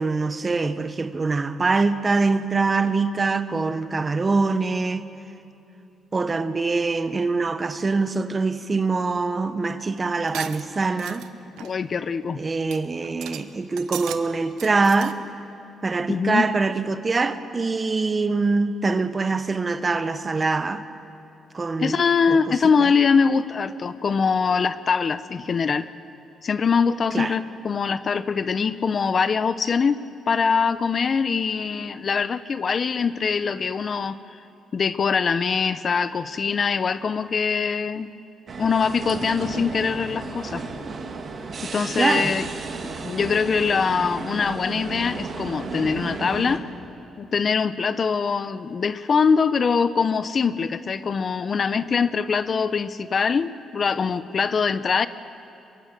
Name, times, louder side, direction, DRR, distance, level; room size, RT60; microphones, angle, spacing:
voice 1, 0.0-5.0 6.1-11.2 12.3-15.2 15.8-20.8 21.5-22.9 27.1-27.4 41.9-42.3, right 3 dB, 30° right, 1.1 m, -24 dB
sound 1, 10.3-11.3 11.6-11.8 12.2-12.3 12.7-12.8 13.0-13.4 13.8-14.2 14.5-15.1, right 11 dB, 90° right, 1.0 m, -36 dB
voice 2, 11.6-12.4 16.1-16.5 21.8-25.9 26.4-34.2 34.7-38.1 38.6-40.6 41.7-42.5 42.8-46.6 47.2-55.1, left 5 dB, 45° left, 0.7 m, -23 dB
sound 2, 38.5-46.6, right 4 dB, 50° right, 2.6 m, -33 dB
23.0 x 23.0 x 7.8 m
cardioid pair, 90°, 0 cm